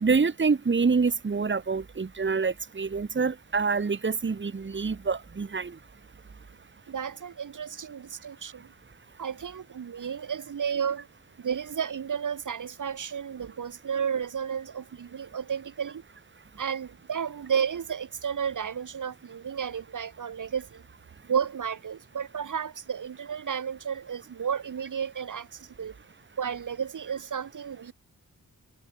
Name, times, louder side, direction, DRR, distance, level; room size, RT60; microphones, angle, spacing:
voice 1, 0.0-5.7, right 4 dB, 35° right, 2.1 m, -26 dB
voice 2, 6.9-8.7 9.2-11.1 11.4-16.0 16.6-20.8 21.3-26.0 26.4-27.9, right 7 dB, 65° right, 2.0 m, -32 dB
wide cardioid pair, 115°, 33 cm